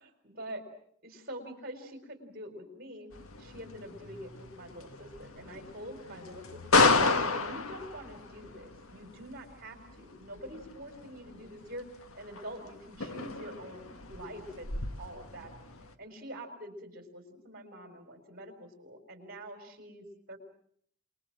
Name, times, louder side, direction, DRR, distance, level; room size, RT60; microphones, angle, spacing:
voice 1, 0.0-0.6 1.0-3.1 3.4-6.8 7.2-11.9 12.1-15.5 16.0-20.4, equal, 45° right, 7 dB, 4.7 m, -45 dB
sound 1, 3.1-15.9, left 3 dB, 80° left, 1.6 m, -33 dB
27.0 x 21.5 x 7.6 m, 0.66 s
head